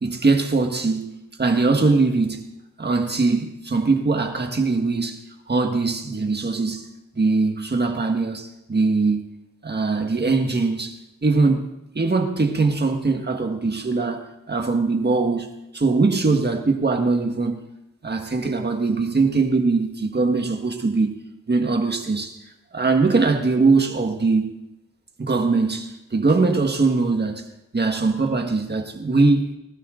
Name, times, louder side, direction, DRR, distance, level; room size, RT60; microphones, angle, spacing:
voice 1, 0.0-1.1 1.4-2.4 2.8-5.2 5.5-6.9 7.2-9.3 9.6-11.7 12.0-15.5 15.7-17.7 18.0-21.2 21.5-22.4 22.7-24.5 25.2-27.5 27.7-29.5, right 3 dB, 30° right, 1.7 m, -21 dB
20.0 x 18.5 x 3.9 m
wide cardioid pair, 140°, 32 cm